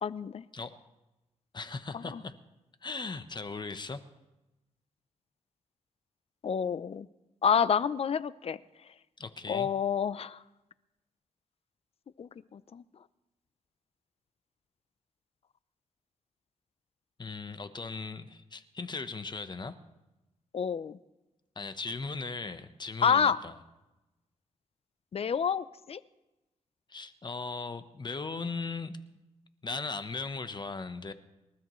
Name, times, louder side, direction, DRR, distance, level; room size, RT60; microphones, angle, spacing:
voice 1, 0.0-0.4 1.9-2.2 6.4-7.1 7.4-8.6 9.5-10.4 12.2-12.8 20.5-21.0 23.0-23.4 25.1-26.0, left 7 dB, 50° left, 17 dB, 0.6 m, -28 dB
voice 2, 1.5-2.3 2.8-4.0 9.2-9.7 17.2-19.8 21.6-23.5 26.9-29.0 29.6-31.1, left 4 dB, 35° left, 10 dB, 1.0 m, -38 dB
27.5 x 13.0 x 3.2 m, 1.0 s
cardioid pair, 75°, 13 cm